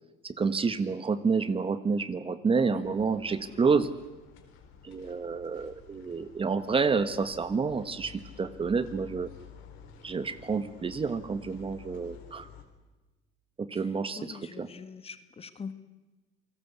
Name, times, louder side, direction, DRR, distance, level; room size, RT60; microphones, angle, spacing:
voice 1, 0.2-3.9 4.8-9.3 10.0-12.5 13.6-14.7, right 5 dB, 25° right, 13 dB, 1.3 m, -29 dB
voice 2, 2.5-3.2 3.5-3.6 13.7-13.8 14.2-15.7, left 5 dB, 30° left, 12 dB, 1.8 m, -43 dB
sound 1, 2.8-12.6, left 7 dB, 70° left, 4.2 m, -51 dB
28.5 x 19.0 x 8.2 m, 1.1 s
supercardioid pair, 105°, 21 cm